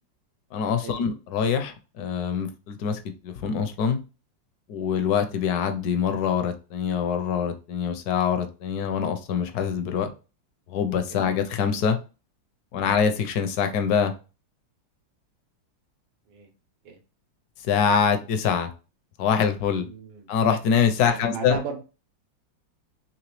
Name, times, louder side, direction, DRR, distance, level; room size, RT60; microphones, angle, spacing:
voice 1, 0.5-4.0 4.7-10.1 10.7-12.0 12.7-14.1 17.6-18.7 19.2-19.9 20.3-21.6, left 7 dB, 70° left, 8 dB, 0.9 m, -24 dB
voice 2, 19.8-20.3 21.0-21.8, right 6 dB, 80° right, 5 dB, 1.5 m, -36 dB
3.9 x 3.0 x 3.0 m, 0.32 s
omnidirectional pair, 2.0 m